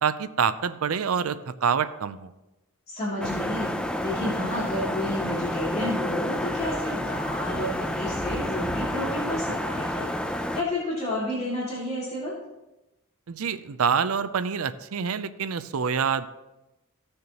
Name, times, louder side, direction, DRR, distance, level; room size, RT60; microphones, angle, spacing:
voice 1, 0.0-2.3 13.3-16.3, right 6 dB, 75° right, 14 dB, 0.5 m, -26 dB
voice 2, 2.9-12.3, left 1 dB, 30° left, -7 dB, 2.7 m, -31 dB
sound 1, 3.2-10.6, left 1 dB, 5° left, 0.5 m, -30 dB
16.0 x 6.5 x 3.0 m, 0.99 s
head